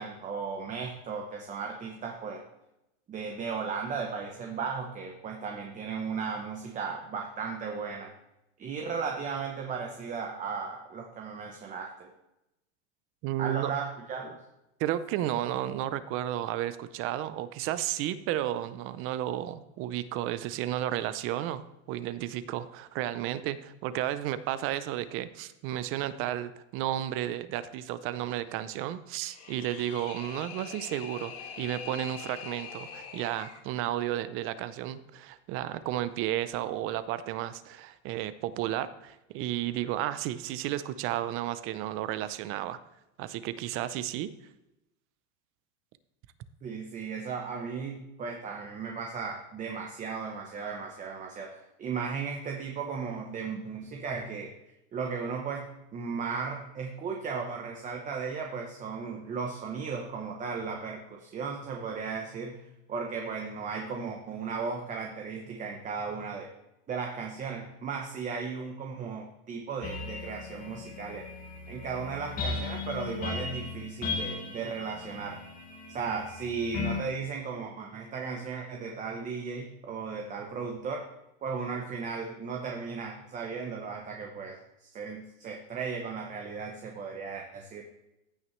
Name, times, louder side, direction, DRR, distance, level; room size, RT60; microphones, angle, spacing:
voice 1, 0.0-2.4 3.1-8.1 8.6-12.1 13.4-14.4 46.6-54.5 54.9-55.7 55.9-66.5 66.9-71.3 71.7-75.4 75.9-81.1 81.4-87.8, right 5 dB, 20° right, 2 dB, 0.9 m, -36 dB
voice 2, 13.2-13.7 14.8-42.8 43.2-44.3, right 12 dB, 40° right, 14 dB, 0.5 m, -33 dB
sound 1, 29.2-33.6, left 6 dB, 45° left, 1.4 m, -43 dB
sound 2, 69.8-77.0, left 4 dB, 25° left, 1.3 m, -37 dB
15.0 x 6.0 x 3.2 m, 0.90 s
supercardioid pair, 145°, 34 cm